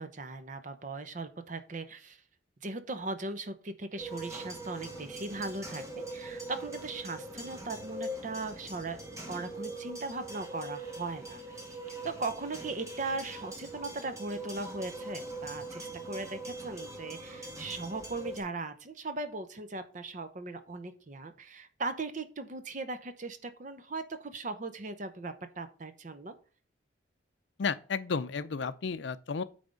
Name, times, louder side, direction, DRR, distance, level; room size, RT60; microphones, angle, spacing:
voice 1, 0.0-2.2 2.6-5.8 6.1-9.0 9.3-11.8 12.0-26.3, right 3 dB, 40° right, 0.7 m, -38 dB
sound 1, 4.0-18.4, right 1 dB, 15° right, 1.4 m, -42 dB
voice 2, 27.6-29.4, left 5 dB, 70° left, 0.5 m, -32 dB
9.2 x 3.5 x 5.2 m
head